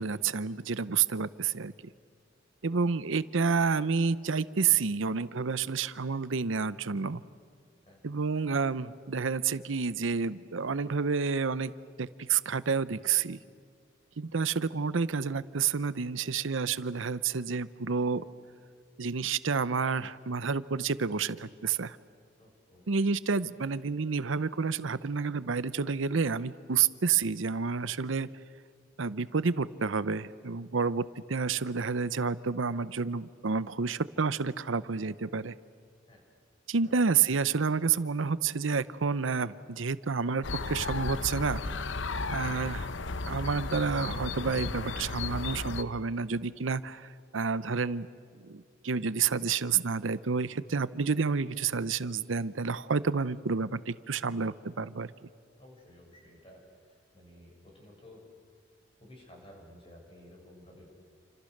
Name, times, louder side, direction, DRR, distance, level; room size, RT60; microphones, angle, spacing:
voice 1, 0.0-1.7 2.6-7.2 8.0-11.7 12.0-13.4 14.2-18.2 19.0-22.0 22.9-28.3 29.0-35.5 36.7-41.6 42.3-42.9 43.2-48.1 48.4-55.1, right 5 dB, 70° right, 16 dB, 0.7 m, -29 dB
voice 2, 22.4-22.9 36.1-36.2 36.8-37.0 55.6-58.2 59.0-60.9, left 1 dB, 25° left, 0 dB, 7.0 m, -54 dB
sound 1, 40.4-45.8, left 3 dB, 65° left, 0.8 m, -34 dB
29.0 x 26.5 x 6.6 m, 2.2 s
head